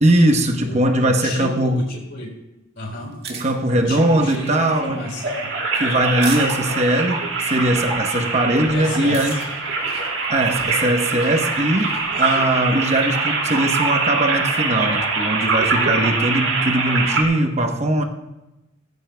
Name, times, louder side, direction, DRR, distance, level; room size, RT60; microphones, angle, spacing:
voice 1, 0.0-1.8 3.3-5.0 5.8-9.4 10.3-18.0, right 1 dB, 35° right, 4 dB, 0.9 m, -20 dB
voice 2, 0.6-2.3 2.7-3.1 3.7-5.5 6.6-7.1 8.7-9.4 11.9-12.4, left 2 dB, 60° left, 0 dB, 4.1 m, -33 dB
sound 1, 3.0-12.1, right 6 dB, 55° right, 1.8 m, -40 dB
sound 2, 3.9-17.2, right 3 dB, 75° right, 3.6 m, -24 dB
19.5 x 15.0 x 2.3 m, 0.98 s
head